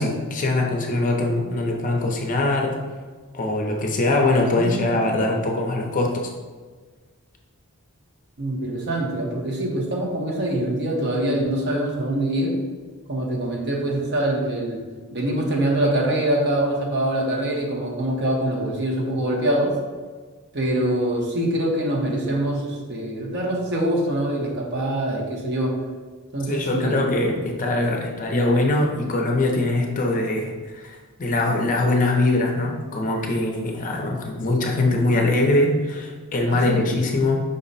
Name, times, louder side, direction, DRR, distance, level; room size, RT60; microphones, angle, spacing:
voice 1, 0.0-2.7 3.3-6.3 26.5-37.4, left 2 dB, 35° left, 1 dB, 0.5 m, -22 dB
voice 2, 4.5-5.0 8.4-12.7 13.1-19.8 20.5-25.8 26.3-27.0 36.5-36.9, right 1 dB, 50° right, -1 dB, 0.8 m, -24 dB
5.3 x 2.1 x 4.0 m, 1.4 s
head